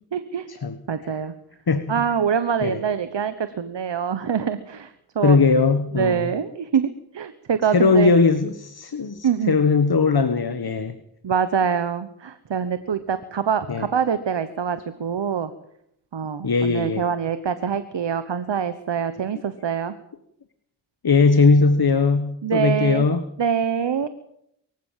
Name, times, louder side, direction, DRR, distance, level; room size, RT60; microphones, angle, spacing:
voice 1, 0.1-0.5 0.9-1.3 1.9-5.4 5.9-8.1 9.2-9.6 11.2-15.5 16.1-19.9 22.4-23.1 23.4-24.1, right 7 dB, 90° right, 12 dB, 1.2 m, -25 dB
voice 2, 5.2-6.3 7.7-11.0 13.7-13.9 16.4-17.0 21.0-23.2, left 4 dB, 60° left, 11 dB, 1.5 m, -19 dB
23.5 x 15.5 x 7.5 m, 0.75 s
cardioid pair, 40°, 42 cm